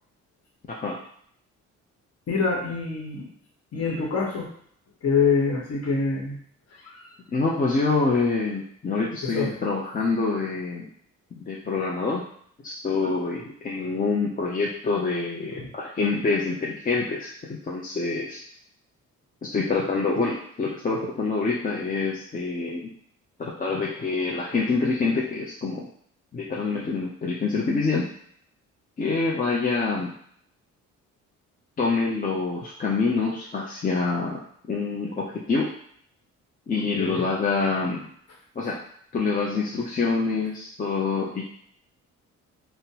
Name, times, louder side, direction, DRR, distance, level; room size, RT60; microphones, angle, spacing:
voice 1, 2.3-3.3 3.7-4.5 5.0-6.4 6.8-7.1 9.2-9.5 15.5-15.7 36.9-37.3, left 5 dB, 55° left, -1 dB, 1.0 m, -25 dB
voice 2, 7.3-10.9 11.3-12.2 12.6-18.4 19.4-22.9 23.4-25.9 26.3-28.1 29.0-30.1 31.8-34.4 34.7-35.7 36.7-38.0 38.6-38.8 39.1-41.4, left 4 dB, 30° left, -4 dB, 0.5 m, -26 dB
3.7 x 2.1 x 2.8 m, 0.63 s
cardioid pair, 90°, 30 cm